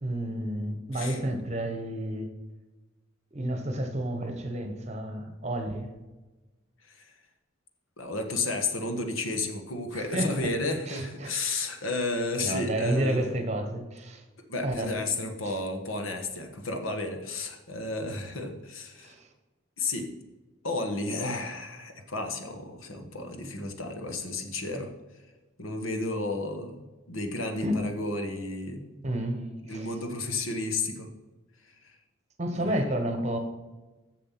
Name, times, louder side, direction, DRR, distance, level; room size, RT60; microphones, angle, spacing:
voice 1, 0.0-2.3 3.3-5.9 9.9-10.5 10.9-11.3 12.4-14.2 14.6-14.9 15.4-15.5 19.0-19.3 27.5-27.7 29.0-29.9 32.4-33.4, right 1 dB, 35° right, 6 dB, 1.2 m, -31 dB
voice 2, 8.0-13.4 14.5-19.2 19.8-20.1 20.6-24.9 25.6-29.0 29.7-31.1 31.8-31.9 32.5-32.8, left 2 dB, 90° left, 5 dB, 1.3 m, -32 dB
7.4 x 6.6 x 5.7 m, 1.2 s
head